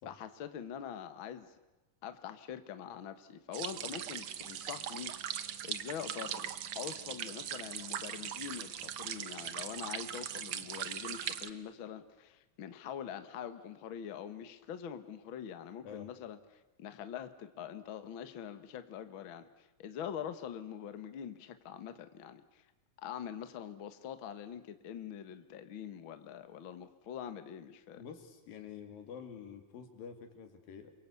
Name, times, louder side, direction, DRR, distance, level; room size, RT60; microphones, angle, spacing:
voice 1, 0.0-1.5 2.0-16.4 16.8-22.6 23.0-28.0, left 9 dB, 50° left, 10 dB, 1.6 m, -44 dB
sound 1, 3.5-11.5, right 10 dB, 65° right, 1.4 m, -40 dB
voice 2, 28.0-30.9, left 7 dB, 85° left, 7 dB, 4.3 m, -48 dB
28.5 x 23.0 x 8.4 m, 1.1 s
omnidirectional pair, 4.0 m